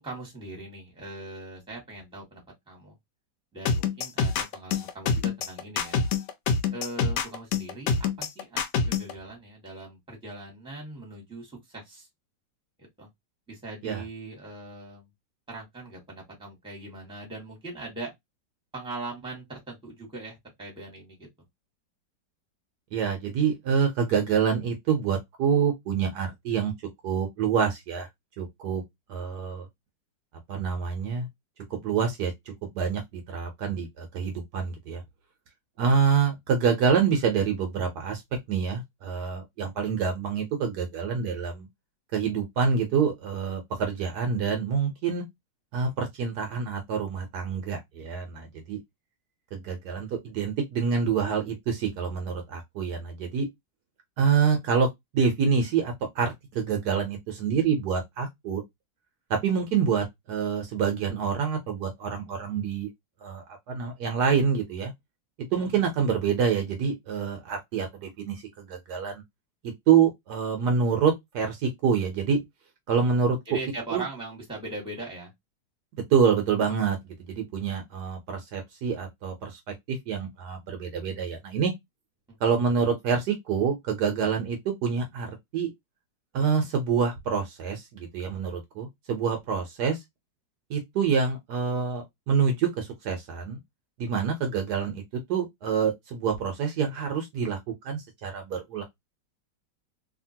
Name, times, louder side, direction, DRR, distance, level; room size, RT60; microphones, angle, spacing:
voice 1, 0.0-2.9 3.5-6.0 6.7-8.6 8.8-12.1 12.8-13.1 13.5-15.1 15.5-18.1 18.7-21.3 65.5-65.8 73.5-75.3 82.3-82.4, right 2 dB, 5° right, 1.2 m, -40 dB
sound 1, 3.7-9.1, left 5 dB, 75° left, 1.2 m, -25 dB
voice 2, 22.9-26.7 27.0-28.1 28.4-28.8 29.1-29.7 30.5-31.3 31.7-32.3 32.7-35.0 35.8-38.2 38.5-41.7 42.1-45.2 45.7-48.8 49.5-53.5 54.2-54.9 55.1-58.6 59.3-62.9 63.2-64.9 65.4-69.2 69.6-72.4 72.9-73.4 73.9-74.0 76.1-77.0 77.3-79.6 79.9-81.7 82.4-85.7 86.3-90.0 90.7-93.6 94.0-95.0 95.3-97.6 97.8-98.8, right 6 dB, 70° right, 1.2 m, -26 dB
2.8 x 2.8 x 2.7 m
omnidirectional pair, 2.0 m